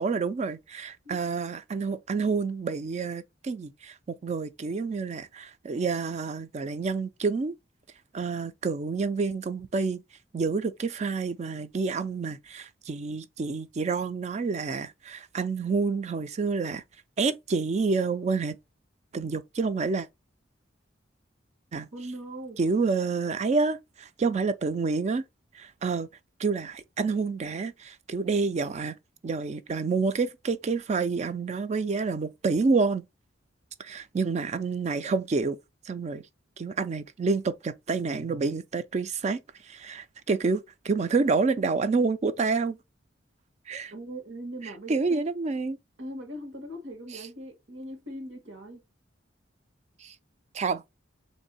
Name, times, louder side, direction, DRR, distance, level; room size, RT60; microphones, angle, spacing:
voice 1, 0.0-7.6 8.1-10.0 10.3-16.8 17.2-18.6 19.1-20.1 21.7-21.9 22.6-25.2 25.5-26.1 26.4-29.0 29.2-33.0 33.8-35.6 35.9-36.2 36.6-39.4 39.7-42.8 43.7-43.9 44.9-45.8 47.1-47.2 50.0-50.1 50.5-51.0, right 4 dB, 35° right, 0.4 m, -28 dB
voice 2, 21.9-22.6 43.9-45.3 46.0-48.8, right 1 dB, 85° right, 1.3 m, -40 dB
3.6 x 2.7 x 4.1 m
head